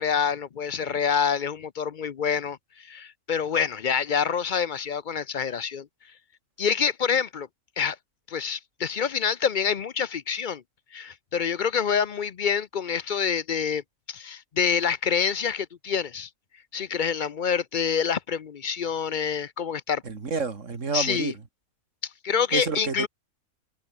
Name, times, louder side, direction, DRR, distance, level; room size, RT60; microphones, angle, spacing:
voice 1, 0.0-5.9 6.6-7.5 7.8-8.0 8.3-10.6 10.9-13.8 14.1-16.3 16.7-20.0 20.9-21.3 22.0-23.1, left 7 dB, 50° left, 0.6 m, -27 dB
voice 2, 20.1-21.3 22.5-23.1, right 4 dB, 55° right, 2.4 m, -29 dB
omnidirectional pair, 1.5 m